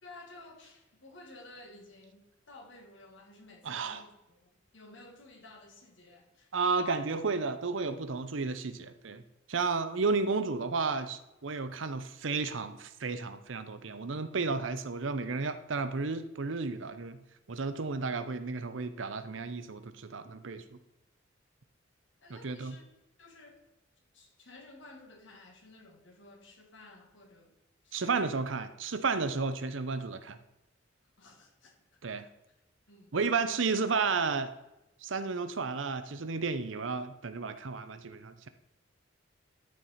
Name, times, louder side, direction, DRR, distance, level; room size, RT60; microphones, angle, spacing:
voice 1, 0.0-6.5 22.2-22.9 23.2-23.6 24.1-27.5 27.8-28.5 29.4-29.5 31.2-32.0 32.9-33.2, left 2 dB, 65° left, 3 dB, 1.9 m, -54 dB
voice 2, 3.6-4.0 6.5-9.2 9.5-17.2 17.5-20.8 22.3-22.7 27.9-30.4 32.0-32.3 33.1-34.5 35.0-38.5, right 4 dB, 70° right, 11 dB, 0.7 m, -32 dB
12.5 x 4.7 x 4.2 m, 0.94 s
head